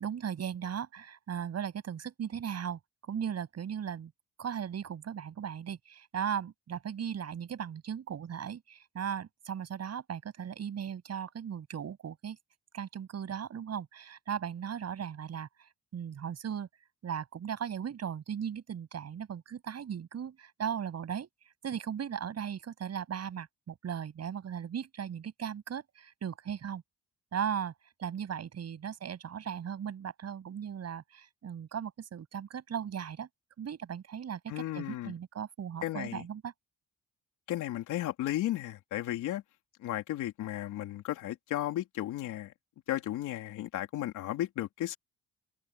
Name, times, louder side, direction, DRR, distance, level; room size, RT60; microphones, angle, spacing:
voice 1, 0.0-2.8 3.1-4.1 4.4-12.4 12.7-15.5 15.9-16.7 17.0-21.3 21.6-26.8 27.3-27.7 28.0-33.3 33.6-36.5, right 8 dB, 55° right, 7.8 m, -37 dB
voice 2, 34.5-35.1 35.8-36.2 37.5-39.4 39.8-42.5 42.9-45.0, left 14 dB, 90° left, 3.3 m, -34 dB
cardioid pair, 90°, 30 cm